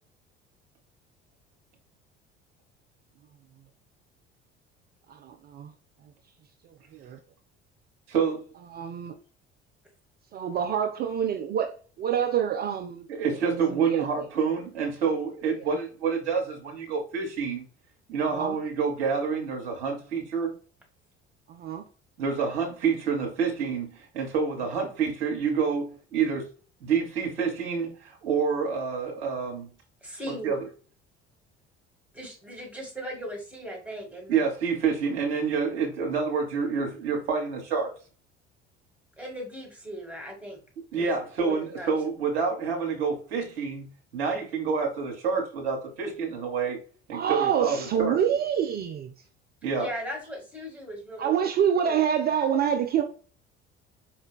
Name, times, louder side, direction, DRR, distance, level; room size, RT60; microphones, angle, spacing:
voice 1, 5.2-5.7 6.9-7.2 8.7-9.1 10.3-11.7 12.0-13.1 13.5-14.0 18.4-18.6 21.5-21.8 47.1-49.1 51.2-53.0, right 8 dB, 30° right, 0.4 m, -26 dB
voice 2, 8.1-8.4 13.1-17.7 18.1-20.5 22.2-26.5 26.8-29.7 30.4-30.7 34.3-37.9 40.9-46.8 47.1-48.2 49.6-49.9, right 5 dB, 70° right, 1.0 m, -28 dB
voice 3, 30.0-30.6 32.1-34.4 39.2-40.6 41.0-41.1 41.4-41.9 49.8-51.5 51.7-52.0, equal, 5° right, 1.4 m, -38 dB
4.6 x 2.2 x 2.2 m
figure-of-eight pair, 55°, 33 cm